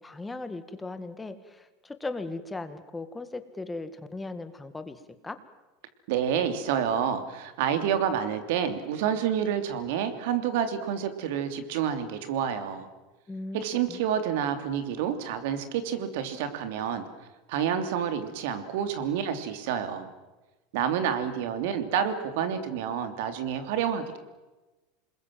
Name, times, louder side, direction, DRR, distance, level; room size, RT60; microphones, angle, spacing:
voice 1, 0.0-5.4 13.3-13.6 13.9-14.0, left 2 dB, 10° left, 10 dB, 2.0 m, -38 dB
voice 2, 6.1-12.9 13.5-17.0 17.5-20.1 20.7-24.2, right 8 dB, 70° right, 9 dB, 3.0 m, -28 dB
28.0 x 21.0 x 7.7 m, 1.1 s
supercardioid pair, 125°, 0 cm